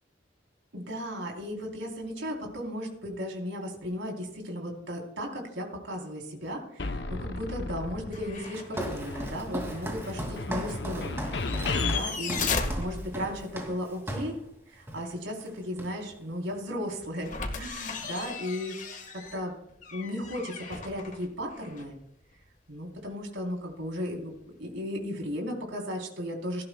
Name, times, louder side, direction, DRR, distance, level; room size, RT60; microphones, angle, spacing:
voice 1, 0.7-12.5 12.8-14.4 14.7-18.8 19.1-19.5 19.9-22.0 22.7-24.3 24.6-26.6, equal, 85° right, 0 dB, 3.8 m, -35 dB
sound 1, 6.8-8.5 8.7-12.0, left 3 dB, 65° left, 0.8 m, -34 dB
sound 2, 8.1-8.7 9.1-9.2 11.3-13.6 17.2-22.0 24.1-24.2, left 4 dB, 40° left, 1.7 m, -36 dB
Walk footsteps, 8.4-14.4 14.9-15.1 15.4-16.2, right 1 dB, 15° right, 2.5 m, -38 dB
18.0 x 15.0 x 2.3 m, 0.76 s
head